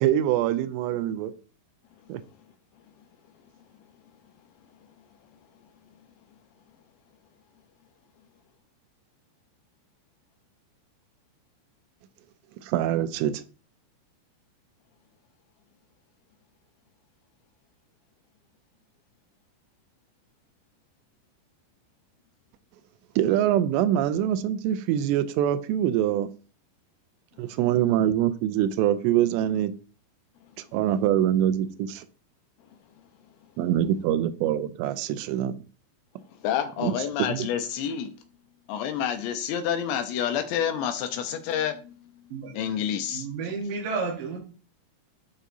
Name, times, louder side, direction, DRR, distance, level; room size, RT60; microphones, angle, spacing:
voice 1, 0.0-1.3 2.1-2.2 12.6-13.4 23.2-26.3 27.4-29.8 30.7-32.1 33.6-35.6 36.8-36.9 37.3-37.5, right 11 dB, 85° right, 12 dB, 2.6 m, -24 dB
voice 2, 36.4-38.2 38.7-42.0 42.5-43.3, left 9 dB, 80° left, 7 dB, 2.8 m, -28 dB
voice 3, 42.3-42.8 43.1-44.4, right 4 dB, 65° right, -2 dB, 2.4 m, -32 dB
11.0 x 4.1 x 2.6 m, 0.36 s
omnidirectional pair, 5.2 m